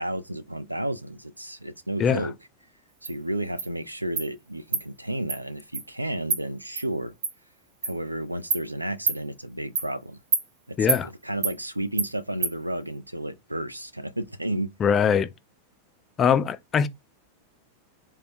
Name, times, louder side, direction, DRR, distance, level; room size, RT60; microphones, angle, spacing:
voice 1, 0.0-2.4 3.0-7.1 7.8-10.2 10.7-10.8 11.0-14.7, right 1 dB, 85° right, 0.3 m, -32 dB
Insect, 3.0-3.1 3.6-3.7 4.2-4.3 4.7-4.8 5.3-5.4 5.7-5.8 6.3-6.4 6.8-6.9 7.2-7.3 7.8-7.9 8.5-8.6 9.1-9.2 9.8-9.9 10.3-10.4 10.9-11.0 11.4-11.5 12.0-12.1 12.4-12.5, right 4 dB, 65° right, 0.7 m, -26 dB
voice 2, 10.8-11.1 14.8-15.3 16.2-16.9, left 7 dB, 25° left, 0.3 m, -22 dB
3.4 x 2.1 x 2.6 m
figure-of-eight pair, 90°, 0 cm